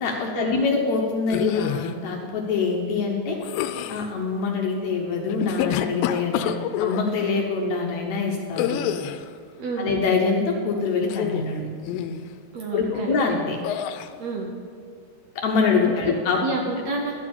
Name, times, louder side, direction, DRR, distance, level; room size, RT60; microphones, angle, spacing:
voice 1, 0.0-3.4 3.9-6.5 6.8-8.8 9.8-12.0 12.7-13.6 15.4-16.4, left 4 dB, 70° left, 0 dB, 1.9 m, -24 dB
sound 1, 1.3-1.9 3.4-4.1 5.3-7.0 8.6-9.3 11.0-11.5 11.9-12.3 13.6-14.1, left 10 dB, 90° left, 2.3 m, -27 dB
voice 2, 9.6-10.0 12.5-13.2 14.2-14.5 15.9-17.1, right 3 dB, 70° right, 0 dB, 1.7 m, -29 dB
12.5 x 4.9 x 8.4 m, 2.2 s
omnidirectional pair, 4.0 m